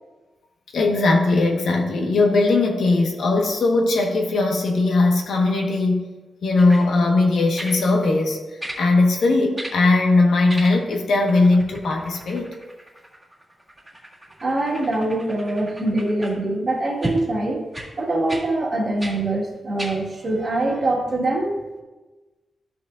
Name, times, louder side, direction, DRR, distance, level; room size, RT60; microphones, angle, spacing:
voice 1, 0.7-6.1 6.4-8.4 8.8-12.5, left 3 dB, 75° left, 1 dB, 1.4 m, -19 dB
sound 1, 6.6-6.9 7.6-7.8 8.6-8.8 9.6-9.8 10.5-11.0 11.3-16.4 17.0-17.2 17.7-17.9 18.3-18.5 19.0-19.2 19.8-20.0 20.6-20.7, right 1 dB, 10° right, 1.9 m, -35 dB
voice 2, 14.4-17.6 17.9-21.6, right 2 dB, 40° right, -2 dB, 1.8 m, -23 dB
13.5 x 6.2 x 2.6 m, 1.2 s
wide cardioid pair, 155°, 0 cm